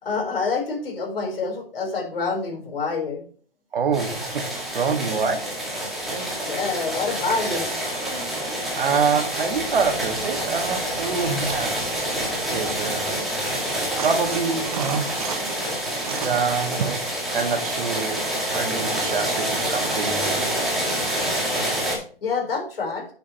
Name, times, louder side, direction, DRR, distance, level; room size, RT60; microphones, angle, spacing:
voice 1, 0.0-3.2 6.4-7.7 22.2-23.1, left 4 dB, 75° left, 2 dB, 4.4 m, -27 dB
voice 2, 3.7-4.5 4.7-5.6 6.1-6.3 8.8-11.8 12.5-13.1 14.0-15.1 16.2-17.0 17.3-20.5, right 5 dB, 70° right, 5 dB, 2.0 m, -26 dB
sound 1, 3.9-22.0, right 1 dB, ahead, 2.0 m, -27 dB
sound 2, 13.8-15.6 16.0-17.1 18.7-18.8, right 9 dB, 40° right, 0.6 m, -32 dB
9.6 x 6.8 x 3.1 m, 0.43 s
hypercardioid pair, 155°, 29 cm